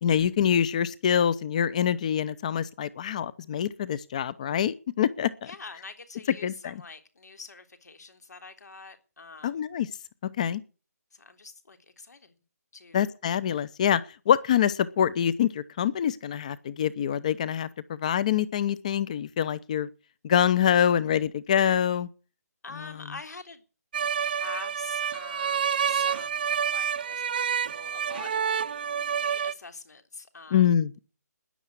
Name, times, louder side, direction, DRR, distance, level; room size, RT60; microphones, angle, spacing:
voice 1, 0.0-5.3 6.4-6.8 9.4-9.9 10.4-10.6 12.9-14.0 14.3-19.9 20.2-22.1 30.5-31.0, left 9 dB, 25° left, 0.7 m, -25 dB
voice 2, 5.4-9.6 11.1-12.3 12.7-13.2 22.6-23.6 24.2-27.2 27.6-28.5 28.7-30.7, left 3 dB, 75° left, 3.4 m, -45 dB
sound 1, 23.9-29.5, right 7 dB, 35° right, 0.6 m, -28 dB
13.5 x 11.0 x 8.3 m
hypercardioid pair, 170°, 9 cm